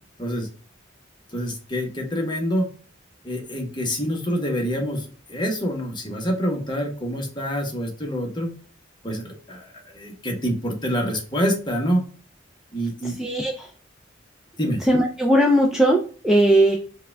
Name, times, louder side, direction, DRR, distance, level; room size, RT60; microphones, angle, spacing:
voice 1, 1.3-2.7 3.2-8.5 9.0-12.0 12.7-13.2 14.6-14.8, equal, 25° left, 1 dB, 1.0 m, -26 dB
voice 2, 13.0-13.7 14.9-16.8, right 1 dB, 5° right, 0 dB, 0.4 m, -19 dB
4.7 x 2.3 x 3.3 m, 0.40 s
head